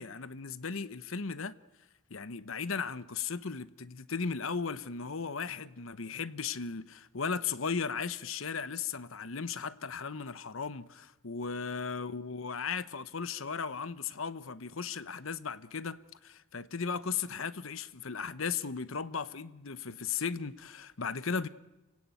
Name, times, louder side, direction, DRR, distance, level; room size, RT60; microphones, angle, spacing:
voice 1, 0.0-1.5 2.1-21.5, left 5 dB, 75° left, 0.9 m, -36 dB
29.5 x 17.0 x 9.2 m
head